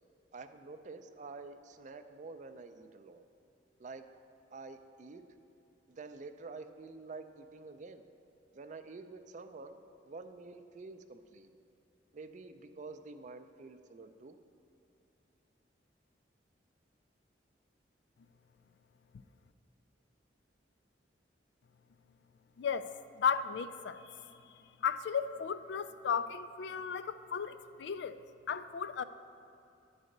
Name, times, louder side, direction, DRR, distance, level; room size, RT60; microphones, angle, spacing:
voice 1, 0.3-3.2 3.8-4.0 4.5-5.2 5.9-8.0 8.5-11.5 12.1-14.4, right 3 dB, 40° right, 9 dB, 0.4 m, -48 dB
voice 2, 22.6-22.9 23.2-24.2 24.8-28.2 28.5-29.0, left 6 dB, 70° left, 12 dB, 0.3 m, -35 dB
10.0 x 4.0 x 6.5 m, 2.6 s
head